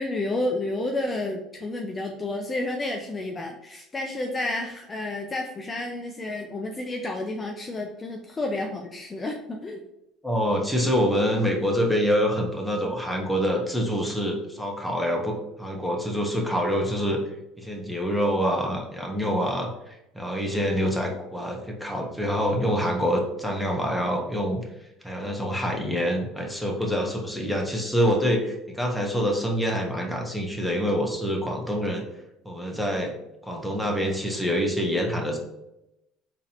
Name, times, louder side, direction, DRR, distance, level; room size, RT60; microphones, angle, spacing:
voice 1, 0.0-9.8, left 2 dB, 25° left, 2 dB, 0.5 m, -30 dB
voice 2, 10.2-17.2 17.6-24.6 25.0-32.0 32.4-33.2 33.4-35.4, equal, ahead, 0 dB, 1.0 m, -26 dB
3.8 x 2.8 x 2.8 m, 0.88 s
hypercardioid pair, 75°, 0 cm